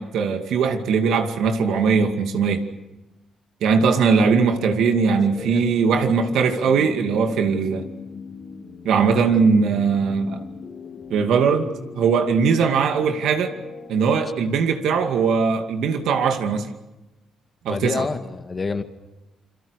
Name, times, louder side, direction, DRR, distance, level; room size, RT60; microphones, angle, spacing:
voice 1, 0.0-2.7 3.6-7.9 8.8-10.4 11.1-13.6 13.9-16.7 17.6-18.1, right 5 dB, 75° right, 6 dB, 2.3 m, -20 dB
sound 1, 3.9-14.3, left 5 dB, 50° left, 3.4 m, -40 dB
voice 2, 17.7-18.8, left 4 dB, 30° left, 8 dB, 1.8 m, -27 dB
28.5 x 23.0 x 6.6 m, 1.0 s
cardioid pair, 90°, 0 cm